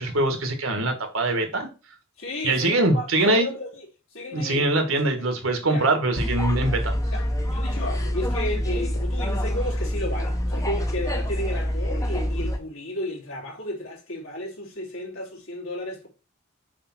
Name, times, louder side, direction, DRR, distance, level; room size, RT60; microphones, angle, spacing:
voice 1, 0.0-1.7 2.4-3.5 4.3-6.9, right 2 dB, 70° right, 1.7 m, -23 dB
voice 2, 2.2-3.8 4.1-5.3 5.7-5.9 7.1-16.1, left 1 dB, 70° left, 3.4 m, -33 dB
sound 1, 6.1-12.6, equal, 15° left, 0.9 m, -26 dB
6.8 x 3.4 x 5.8 m
head